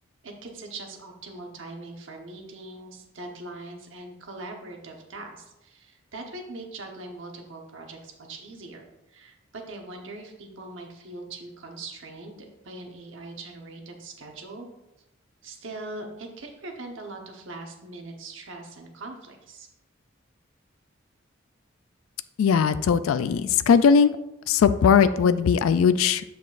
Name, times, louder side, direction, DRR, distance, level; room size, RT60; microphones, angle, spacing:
voice 1, 0.2-14.7 15.4-19.7, right 2 dB, 65° right, 2 dB, 1.0 m, -41 dB
voice 2, 22.4-24.2 24.5-26.2, left 6 dB, 80° left, 13 dB, 0.3 m, -19 dB
7.1 x 5.9 x 2.5 m, 0.91 s
head